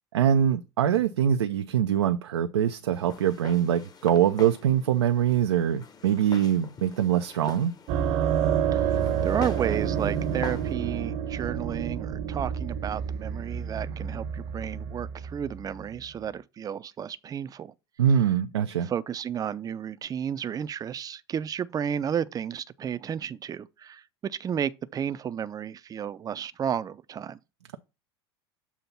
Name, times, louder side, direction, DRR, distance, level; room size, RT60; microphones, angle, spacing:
voice 1, 0.1-7.7 18.0-18.9, right 9 dB, 85° right, 0.5 m, -23 dB
Walk footsteps, 2.9-10.7, left 6 dB, 30° left, 1.0 m, -45 dB
sound 1, 7.9-16.2, right 8 dB, 55° right, 0.9 m, -29 dB
voice 2, 9.2-17.7 18.8-27.4, right 8 dB, 25° right, 0.5 m, -32 dB
7.1 x 2.8 x 5.8 m
hypercardioid pair, 85°, 14 cm